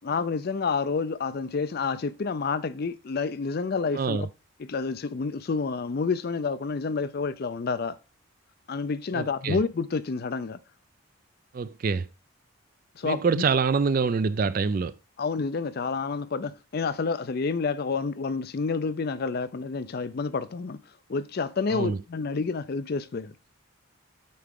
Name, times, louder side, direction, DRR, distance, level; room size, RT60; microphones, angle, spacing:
voice 1, 0.0-4.3 4.6-8.0 8.7-10.6 13.0-13.4 15.2-20.8 21.1-23.3, left 4 dB, 45° left, 0.4 m, -29 dB
voice 2, 3.9-4.3 9.1-9.6 11.5-12.1 13.0-14.9 21.7-22.0, right 5 dB, 40° right, 0.3 m, -25 dB
8.5 x 4.6 x 3.6 m
head